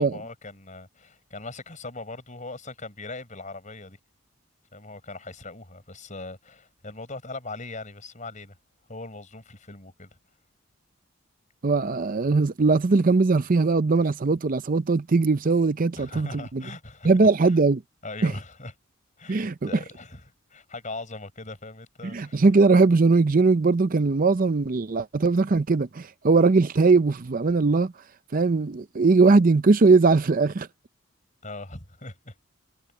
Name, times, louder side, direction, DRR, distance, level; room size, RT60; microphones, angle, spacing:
voice 1, 0.0-4.0 4.7-8.5 8.9-10.1 16.0-17.1 17.4-17.6 18.0-18.7 19.2-20.2 20.5-22.4 31.4-32.3, left 2 dB, 35° left, 5.5 m, -40 dB
voice 2, 11.6-16.6 17.0-17.8 18.2-18.3 19.3-19.7 22.0-27.9 28.3-30.7, right 3 dB, 40° right, 0.5 m, -20 dB
head